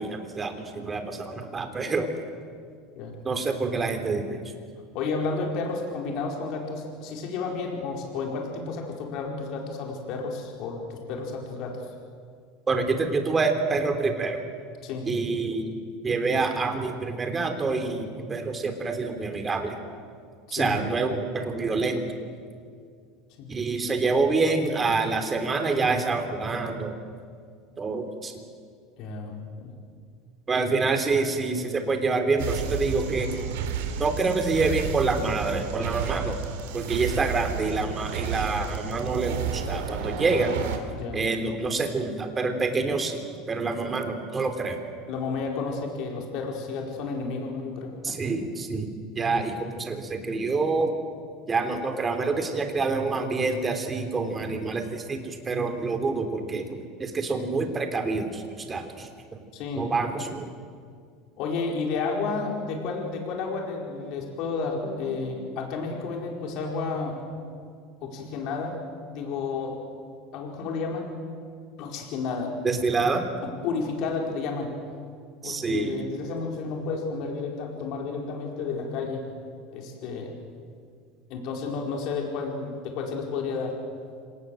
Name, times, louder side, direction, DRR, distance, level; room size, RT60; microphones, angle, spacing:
voice 1, 0.0-2.1 3.2-4.4 12.7-14.4 15.1-15.8 16.0-19.8 20.5-22.0 23.5-26.9 27.8-28.3 30.5-33.5 34.0-36.4 36.7-40.6 41.1-44.8 48.0-48.9 49.2-50.9 51.5-59.1 59.7-60.5 72.6-73.2 75.4-76.0, right 3 dB, 25° right, 6 dB, 3.5 m, -27 dB
voice 2, 4.9-11.8 14.8-15.1 20.5-20.8 23.4-23.5 29.0-29.8 41.0-41.2 45.1-48.2 59.5-59.9 61.4-67.2 68.0-68.8 69.1-69.8 70.3-71.2 71.8-72.5 73.6-74.7 75.4-79.3 79.7-80.3 81.3-83.7, left 4 dB, 60° left, 1 dB, 4.7 m, -31 dB
sound 1, 32.4-40.8, right 6 dB, 85° right, 3.2 m, -31 dB
26.0 x 19.0 x 7.8 m, 2.2 s
supercardioid pair, 110°, 0 cm